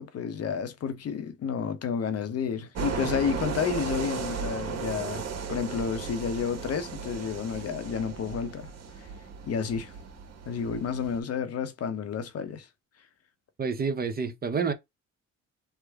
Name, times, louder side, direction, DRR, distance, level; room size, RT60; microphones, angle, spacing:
voice 1, 0.0-5.2 5.5-8.7 9.5-9.9 10.5-12.7, left 7 dB, 55° left, 0.8 m, -31 dB
sound 1, 2.7-11.2, right 5 dB, 55° right, 1.0 m, -36 dB
voice 2, 13.6-14.7, right 5 dB, 30° right, 0.7 m, -28 dB
3.5 x 2.1 x 3.4 m
cardioid pair, 90°, 30 cm